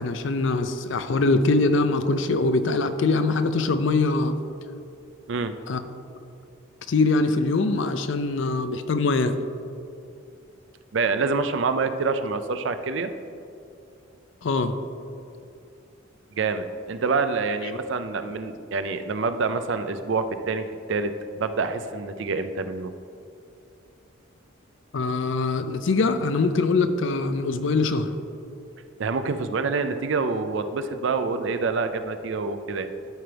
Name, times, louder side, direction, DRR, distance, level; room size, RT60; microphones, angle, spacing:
voice 1, 0.0-4.4 5.7-5.8 6.9-9.4 14.4-14.7 24.9-28.1, left 3 dB, 65° left, 10 dB, 0.5 m, -23 dB
voice 2, 10.9-13.1 16.4-21.1 21.4-22.9 29.0-32.9, right 4 dB, 65° right, 9 dB, 0.4 m, -26 dB
12.5 x 4.5 x 3.4 m, 2.6 s
head